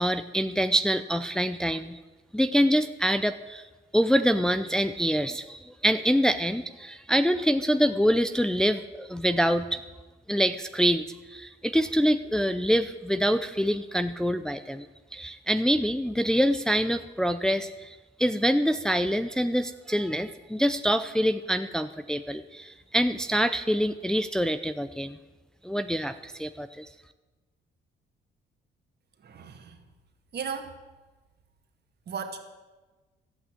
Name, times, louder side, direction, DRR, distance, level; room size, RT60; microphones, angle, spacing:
voice 1, 0.0-2.0 2.3-3.6 3.9-9.8 10.3-14.9 15.1-25.2 25.6-26.9, equal, 5° left, 9 dB, 0.6 m, -25 dB
voice 2, 29.2-29.8 30.3-30.8 32.1-32.4, right 6 dB, 55° right, 6 dB, 1.9 m, -35 dB
12.5 x 8.6 x 8.6 m, 1.2 s
cardioid pair, 90°, 20 cm